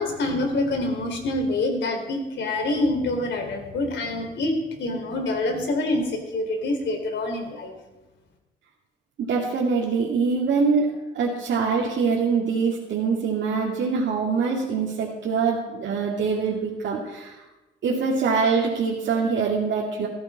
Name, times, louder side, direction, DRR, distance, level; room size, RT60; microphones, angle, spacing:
voice 1, 0.0-7.7, left 2 dB, 65° left, 4 dB, 3.2 m, -26 dB
voice 2, 9.2-17.3 17.8-20.1, right 5 dB, 70° right, -4 dB, 2.3 m, -24 dB
14.5 x 14.0 x 4.2 m, 1.1 s
cardioid pair, 90°, 20 cm